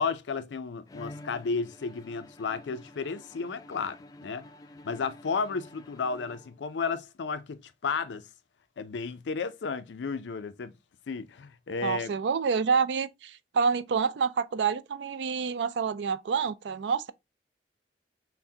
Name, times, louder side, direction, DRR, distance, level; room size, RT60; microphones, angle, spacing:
voice 1, 0.0-4.4 4.8-8.2 8.8-10.7 11.1-12.1, left 5 dB, 90° left, 0.5 m, -33 dB
Bowed string instrument, 0.9-6.9, left 1 dB, 20° left, 0.3 m, -50 dB
voice 2, 11.8-17.1, right 6 dB, 85° right, 0.4 m, -28 dB
5.8 x 2.1 x 2.7 m
head